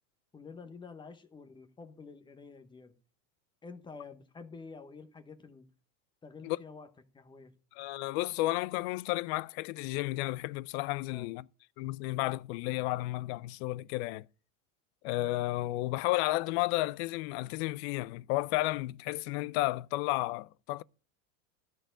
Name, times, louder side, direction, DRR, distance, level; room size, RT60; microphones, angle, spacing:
voice 1, 0.3-2.9 3.6-5.7 6.2-6.9 7.1-7.5 11.1-11.3, left 4 dB, 10° left, 0.9 m, -49 dB
voice 2, 7.8-11.5 11.8-14.3 15.0-20.8, left 18 dB, 50° left, 0.5 m, -32 dB
13.0 x 4.6 x 8.8 m
supercardioid pair, 140°, 42 cm